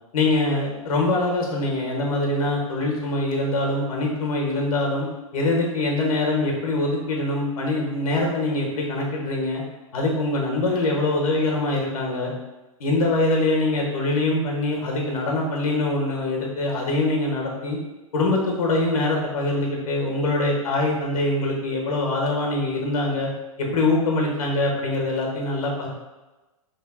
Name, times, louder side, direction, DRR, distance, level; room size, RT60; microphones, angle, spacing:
voice 1, 0.1-5.1 5.3-9.6 9.9-12.3 12.8-17.8 18.1-23.3 23.6-25.9, left 2 dB, 70° left, -1 dB, 1.2 m, -23 dB
4.5 x 3.2 x 2.2 m, 1.1 s
hypercardioid pair, 130°, 19 cm